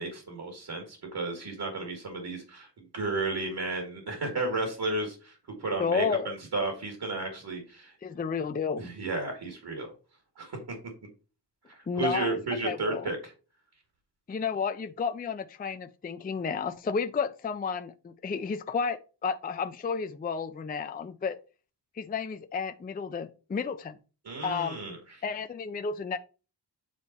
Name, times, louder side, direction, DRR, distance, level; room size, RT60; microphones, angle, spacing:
voice 1, 0.0-5.3 5.6-7.9 8.8-9.9 10.4-10.8 11.7-13.3 24.2-25.0, right 2 dB, 65° right, 2.1 m, -33 dB
voice 2, 5.8-6.4 8.0-8.9 11.9-12.4 12.6-13.1 14.3-21.4 22.0-24.0 24.4-24.8 25.2-26.2, left 5 dB, 25° left, 0.4 m, -32 dB
8.9 x 4.2 x 4.1 m
wide cardioid pair, 175°, 42 cm